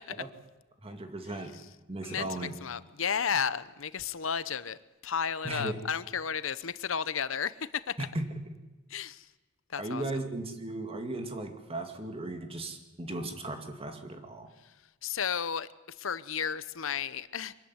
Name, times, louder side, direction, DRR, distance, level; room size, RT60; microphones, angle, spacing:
voice 1, 0.8-1.6 1.9-2.5 5.4-5.7 8.1-8.5 9.8-14.5, right 2 dB, 30° right, 6 dB, 2.4 m, -36 dB
voice 2, 2.0-4.8 5.0-7.9 8.9-9.3 9.7-10.0 14.6-14.7 15.0-17.5, left 7 dB, 85° left, 16 dB, 0.9 m, -33 dB
24.0 x 14.5 x 9.7 m, 1.1 s
head